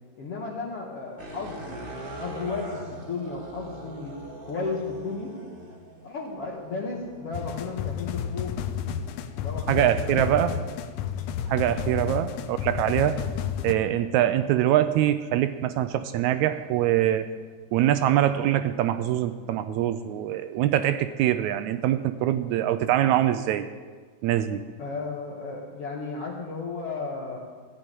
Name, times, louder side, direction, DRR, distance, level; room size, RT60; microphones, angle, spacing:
voice 1, 0.2-1.8 2.2-4.1 4.5-5.3 6.0-8.6 9.4-10.6 12.1-12.4 24.8-27.4, left 4 dB, 55° left, -4 dB, 2.3 m, -34 dB
sound 1, 1.2-17.5 18.1-20.6, right 1 dB, 55° right, 0.6 m, -46 dB
sound 2, 7.3-13.7, left 9 dB, 85° left, 2.2 m, -31 dB
voice 2, 9.7-10.5 11.5-13.2 13.6-17.3 17.7-23.7 24.2-24.6, right 12 dB, 80° right, 11 dB, 1.8 m, -24 dB
15.0 x 6.5 x 9.1 m, 1.5 s
omnidirectional pair, 3.5 m